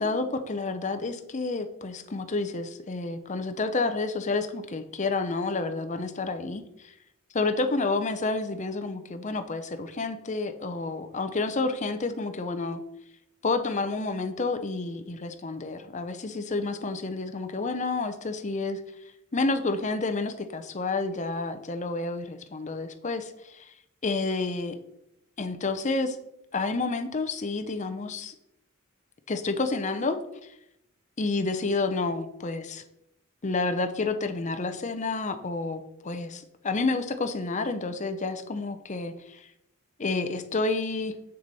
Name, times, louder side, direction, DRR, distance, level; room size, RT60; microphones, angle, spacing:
voice 1, 0.0-6.9 7.3-12.8 13.4-18.8 19.3-23.7 24.0-24.8 25.4-26.2 26.5-28.3 29.3-30.2 31.2-32.8 33.4-39.5 40.0-41.1, left 3 dB, 35° left, 8 dB, 0.6 m, -29 dB
6.8 x 6.5 x 4.1 m, 0.82 s
head